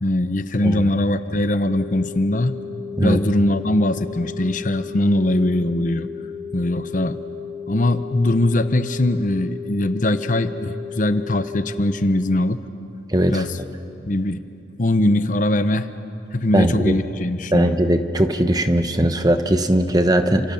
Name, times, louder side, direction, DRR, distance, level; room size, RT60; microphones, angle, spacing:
voice 1, 0.0-2.6 3.0-6.1 6.5-7.2 7.7-12.6 13.3-13.6 14.1-14.4 14.8-15.9 16.3-17.8, left 1 dB, 45° left, 11 dB, 0.8 m, -21 dB
sound 1, 1.7-11.7, left 7 dB, 70° left, 4.6 m, -34 dB
voice 2, 13.1-13.4 16.5-17.0 17.5-20.5, right 1 dB, 20° right, 8 dB, 1.0 m, -19 dB
30.0 x 27.0 x 7.1 m, 2.8 s
head